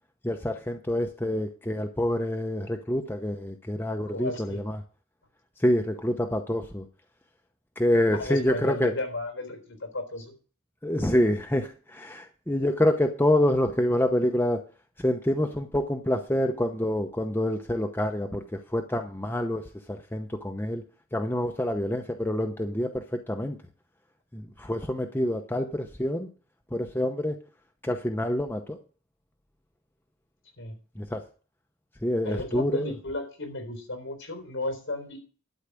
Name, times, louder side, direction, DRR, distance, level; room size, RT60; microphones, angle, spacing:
voice 1, 0.2-4.8 5.6-6.9 7.8-8.9 10.8-14.6 15.0-19.6 19.9-20.8 21.1-23.6 24.3-26.3 26.7-27.4 27.8-28.8 31.0-31.2 32.0-32.9, left 1 dB, 10° left, 4 dB, 0.8 m, -27 dB
voice 2, 4.1-4.6 8.1-10.3 30.6-30.8 32.2-35.2, left 2 dB, 60° left, 5 dB, 3.9 m, -34 dB
12.0 x 4.9 x 8.3 m, 0.38 s
head